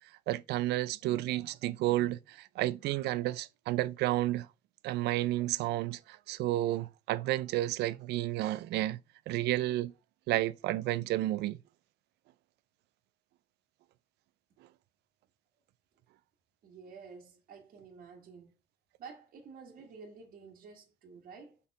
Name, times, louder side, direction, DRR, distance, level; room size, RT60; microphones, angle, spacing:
voice 1, 0.3-4.5 4.8-9.0 9.3-9.9 10.3-11.6, right 15 dB, 80° right, 0.5 m, -31 dB
voice 2, 16.6-18.5 19.0-21.6, right 5 dB, 55° right, 1.5 m, -50 dB
5.4 x 4.4 x 4.6 m
cardioid pair, 110°, 17 cm